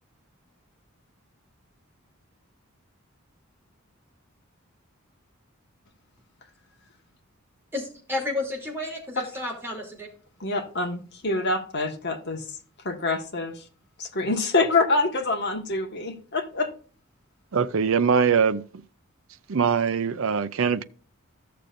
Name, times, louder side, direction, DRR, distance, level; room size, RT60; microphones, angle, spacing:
voice 1, 7.7-10.1, left 2 dB, 10° right, 3.0 m, -31 dB
voice 2, 10.4-12.4 12.8-13.6 14.0-16.7, left 3 dB, 50° left, 1.5 m, -26 dB
voice 3, 17.5-18.6 19.5-20.8, right 6 dB, 65° right, 0.5 m, -22 dB
14.5 x 6.8 x 2.6 m
head